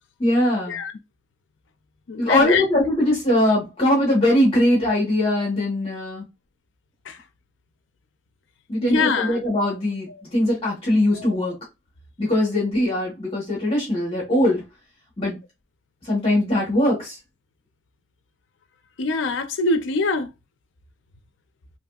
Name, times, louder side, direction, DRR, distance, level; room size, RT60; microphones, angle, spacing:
voice 1, 0.2-0.8 2.2-6.2 8.7-11.5 12.2-14.6 15.2-15.4 16.0-17.2, left 1 dB, 30° left, 1.2 m, -21 dB
voice 2, 2.1-2.6 7.1-7.2 8.8-9.4 11.2-11.4 19.0-20.3, left 3 dB, 75° left, 0.5 m, -23 dB
2.9 x 2.6 x 2.3 m
head